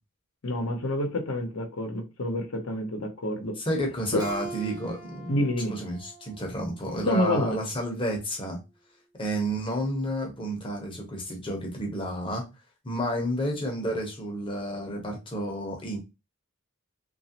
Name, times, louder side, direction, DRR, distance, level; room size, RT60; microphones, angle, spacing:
voice 1, 0.4-3.5 4.1-4.2 5.3-5.7 7.1-7.6, left 1 dB, 70° left, 0.7 m, -28 dB
voice 2, 3.6-5.4 5.7-8.6 9.2-12.4 12.8-16.0, equal, 25° left, 0.7 m, -31 dB
Keyboard (musical), 4.2-7.4, right 2 dB, 20° right, 0.7 m, -43 dB
2.9 x 2.4 x 2.8 m
head